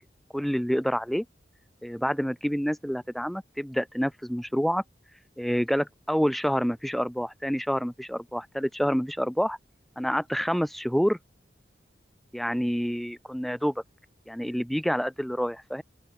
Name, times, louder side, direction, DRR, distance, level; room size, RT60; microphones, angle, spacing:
voice 1, 0.3-1.3 1.8-4.8 5.4-9.6 10.0-11.2 12.3-13.7 14.3-15.8, equal, ahead, 0.4 m, -27 dB
open air
head